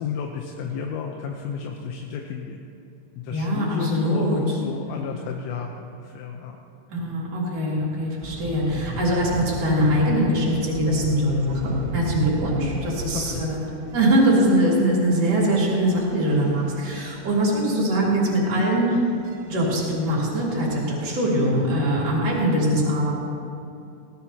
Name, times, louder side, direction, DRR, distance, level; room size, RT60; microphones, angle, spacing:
voice 1, 0.0-2.6 3.2-6.6 8.9-9.1 12.8-13.4 20.8-20.9, left 7 dB, 80° left, 1 dB, 3.3 m, -32 dB
voice 2, 3.3-4.4 4.9-5.0 6.9-13.6 13.9-18.9 19.4-23.1, equal, 35° right, -5 dB, 3.6 m, -22 dB
sound 1, 8.2-21.5, right 2 dB, 75° right, 4.1 m, -37 dB
20.0 x 17.5 x 2.9 m, 2.6 s
omnidirectional pair, 5.9 m